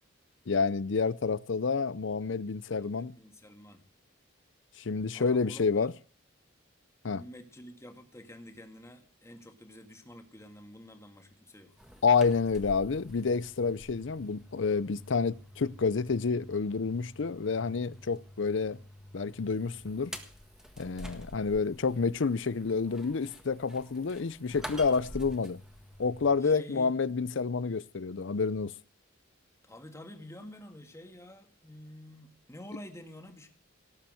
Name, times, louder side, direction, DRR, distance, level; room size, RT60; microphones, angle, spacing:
voice 1, 0.5-3.1 4.8-5.9 7.0-7.2 12.0-18.8 19.1-20.1 20.8-25.6 26.0-28.7, left 5 dB, 65° left, 0.6 m, -29 dB
voice 2, 2.8-3.9 5.1-5.9 7.1-11.8 26.4-27.0 29.6-33.5, left 1 dB, 15° left, 1.9 m, -49 dB
sound 1, 11.8-26.4, equal, 5° right, 1.6 m, -48 dB
18.0 x 7.2 x 7.8 m
head